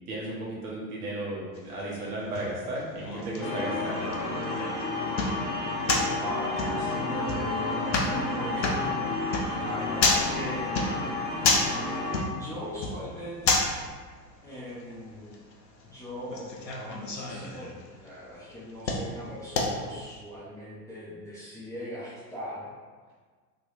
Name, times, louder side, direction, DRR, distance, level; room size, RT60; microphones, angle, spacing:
voice 1, 0.1-4.1 8.5-8.7 9.4-9.6, right 1 dB, 60° right, -5 dB, 1.3 m, -35 dB
sound 1, 1.5-20.1, left 3 dB, 85° left, 0.6 m, -32 dB
sound 2, 3.4-12.2, left 2 dB, 45° left, 1.1 m, -31 dB
voice 2, 6.2-9.0 9.5-11.0 12.3-13.7 14.4-15.4 15.9-22.7, left 1 dB, 5° left, -11 dB, 0.4 m, -40 dB
3.3 x 2.9 x 2.6 m, 1.5 s
figure-of-eight pair, 85°, 49 cm